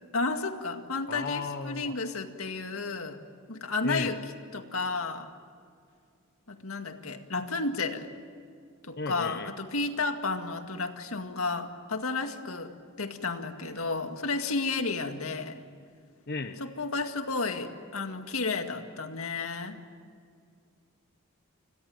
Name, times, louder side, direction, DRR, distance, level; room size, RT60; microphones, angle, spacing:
voice 1, 0.1-3.2 3.5-4.2 4.5-5.3 6.5-8.1 8.8-15.6 16.6-19.8, left 3 dB, 80° left, 6 dB, 2.1 m, -32 dB
voice 2, 1.1-1.9 3.8-4.2 9.0-9.5 16.3-16.6, left 3 dB, 50° left, 8 dB, 1.0 m, -34 dB
29.5 x 21.5 x 9.1 m, 2.2 s
head